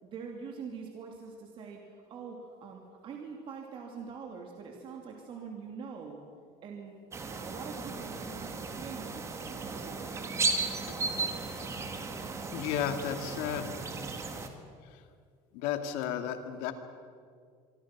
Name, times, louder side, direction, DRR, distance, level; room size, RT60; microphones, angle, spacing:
voice 1, 0.0-6.2 6.6-6.9 7.3-9.3 9.6-10.2, right 5 dB, 35° right, 1 dB, 2.8 m, -44 dB
sound 1, 7.1-14.5, right 3 dB, 20° right, 2.0 m, -35 dB
voice 2, 12.5-13.7 14.9-15.0 15.5-16.7, left 9 dB, 75° left, 7 dB, 2.4 m, -33 dB
26.0 x 24.5 x 6.1 m, 2.2 s
cardioid pair, 155°, 14 cm